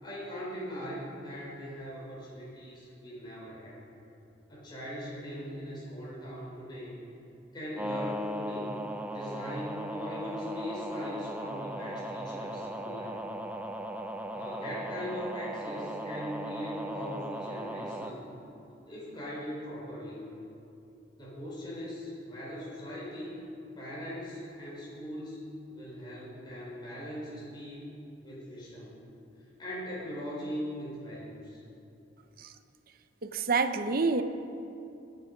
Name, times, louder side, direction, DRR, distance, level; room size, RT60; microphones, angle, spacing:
voice 1, 0.0-3.8 4.5-6.9 7.5-8.8 9.1-13.3 14.3-18.3 18.9-20.2 21.2-23.4 23.8-25.4 25.7-27.9 28.2-28.9 29.6-31.6, equal, 25° left, -7 dB, 4.3 m, -40 dB
sound 1, 7.8-18.1, equal, 10° right, 0.7 m, -38 dB
voice 2, 33.2-34.2, right 4 dB, 50° right, 9 dB, 0.7 m, -27 dB
25.0 x 8.4 x 5.2 m, 2.7 s
head